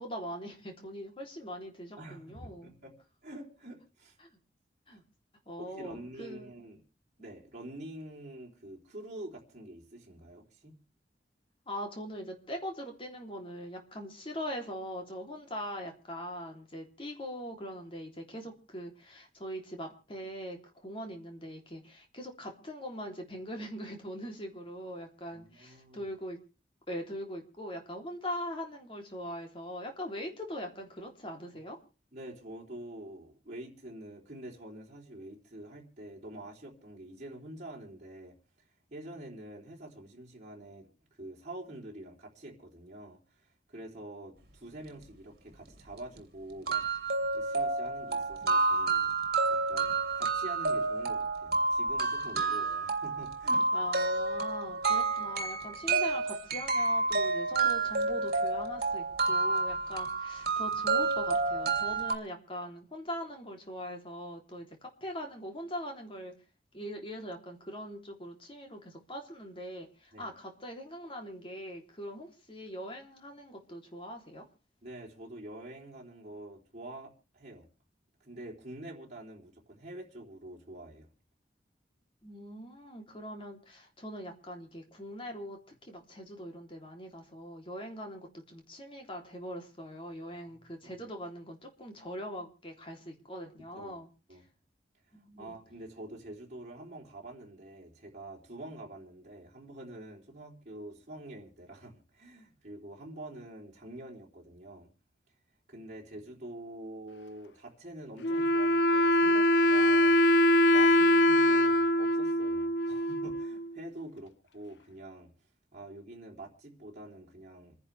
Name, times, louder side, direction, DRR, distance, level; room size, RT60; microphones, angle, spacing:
voice 1, 0.0-2.7 4.2-4.3 4.9-5.0 5.4-6.5 11.7-26.4 26.9-31.8 53.7-66.3 66.7-74.5 82.2-94.1 95.1-95.6, equal, 30° left, 2 dB, 3.4 m, -41 dB
voice 2, 2.0-3.0 3.2-4.2 4.9-5.0 5.6-6.8 7.2-10.8 25.3-26.1 32.1-38.4 38.9-40.9 41.2-47.1 47.3-49.1 49.5-53.7 70.1-70.3 74.8-77.7 78.2-81.1 90.4-90.9 93.7-94.0 94.3-94.4 95.4-104.9 105.7-110.2 110.7-115.3 115.7-117.8, right 1 dB, 40° right, -2 dB, 3.7 m, -46 dB
sound 1, 45.7-45.8 46.2-46.3 46.7-62.2, right 3 dB, 60° right, 2.9 m, -29 dB
Wind instrument woodwind instrument, 108.2-113.7, left 1 dB, 80° left, 0.7 m, -23 dB
28.0 x 10.5 x 3.5 m, 0.34 s
head